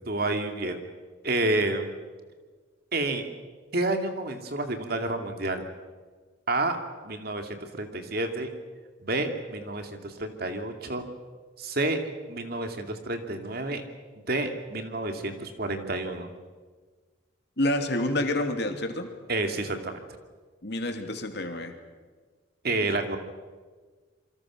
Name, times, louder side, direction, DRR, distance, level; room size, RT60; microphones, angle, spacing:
voice 1, 0.1-0.8 1.2-1.8 2.9-3.3 3.7-5.7 6.5-6.8 7.0-8.5 9.0-11.0 11.6-12.0 12.3-13.8 14.3-16.3 19.3-20.0 22.6-23.2, right 2 dB, 50° right, 6 dB, 2.7 m, -29 dB
voice 2, 17.6-19.1 20.6-21.7, left 1 dB, 60° left, 5 dB, 2.8 m, -28 dB
28.0 x 24.5 x 6.4 m, 1.4 s
head